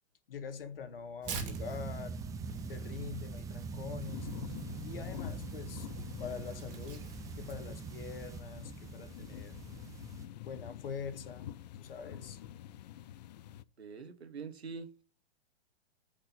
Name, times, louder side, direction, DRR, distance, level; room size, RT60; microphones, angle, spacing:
voice 1, 0.3-2.2 2.7-4.3 4.8-5.9 6.2-9.6 10.4-11.5 11.8-12.4, left 6 dB, 60° left, 1.7 m, -44 dB
Tearing, 1.2-7.7, right 4 dB, 55° right, 2.5 m, -48 dB
sound 1, 1.3-10.3, right 4 dB, 10° right, 0.6 m, -43 dB
sound 2, 4.0-13.6, left 12 dB, 40° left, 0.5 m, -47 dB
voice 2, 13.8-15.0, right 5 dB, 75° right, 1.6 m, -44 dB
8.9 x 5.2 x 5.8 m
figure-of-eight pair, 115°, 32 cm